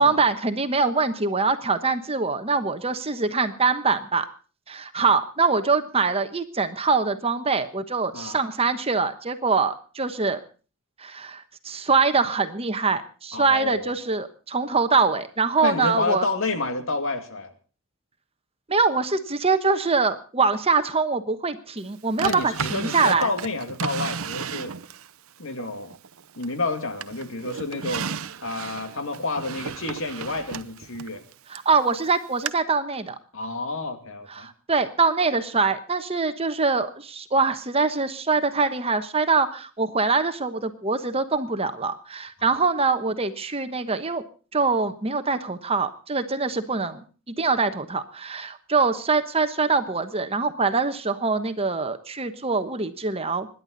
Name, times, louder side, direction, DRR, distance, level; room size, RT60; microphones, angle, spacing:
voice 1, 0.0-4.3 4.7-10.4 11.0-16.3 18.7-23.3 31.5-33.1 34.3-44.2 44.5-53.5, right 4 dB, 25° right, 9 dB, 1.1 m, -24 dB
voice 2, 13.3-13.9 15.6-17.5 22.2-24.7 25.4-25.9 26.4-28.1 28.4-31.3 33.3-34.5 42.4-42.6, left 3 dB, 60° left, 7 dB, 2.5 m, -29 dB
Drawer open or close, 22.2-25.1 25.6-26.6 27.0-31.7 32.5-32.6, right 6 dB, 70° right, 0.8 m, -33 dB
26.0 x 11.0 x 4.0 m, 0.37 s
head